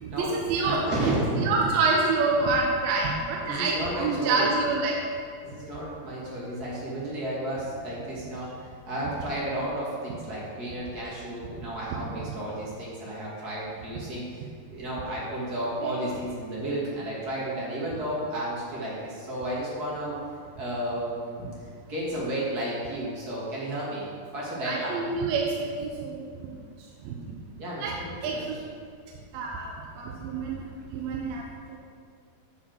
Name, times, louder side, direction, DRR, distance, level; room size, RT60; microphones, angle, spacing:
voice 1, 0.0-0.8 1.1-5.0 15.8-16.0 24.6-26.5 27.0-27.2 27.7-28.0 28.2-28.6 29.3-30.7 30.9-31.4 31.7-31.8, right 3 dB, 75° right, -1 dB, 2.4 m, -27 dB
voice 2, 0.6-1.7 3.5-4.5 5.4-20.2 20.6-21.5 21.9-24.1 24.3-24.9 27.6-28.4, right 1 dB, 45° right, -6 dB, 1.3 m, -32 dB
9.6 x 5.0 x 6.1 m, 2.1 s
omnidirectional pair, 4.6 m